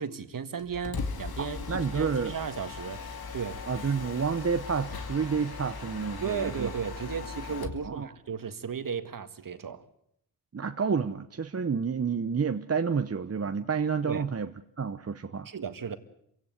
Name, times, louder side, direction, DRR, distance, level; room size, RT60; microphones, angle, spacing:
voice 1, 0.0-3.0 3.3-3.6 6.2-9.9 14.0-14.2 15.5-16.0, right 6 dB, 55° right, 1.9 m, -35 dB
Mechanisms, 0.6-7.9, left 4 dB, 65° left, 2.5 m, -38 dB
voice 2, 1.4-2.3 3.7-6.7 7.8-8.1 10.5-14.5 14.8-15.5, right 6 dB, 35° right, 1.0 m, -29 dB
27.0 x 17.0 x 8.2 m
cardioid pair, 55°, 40 cm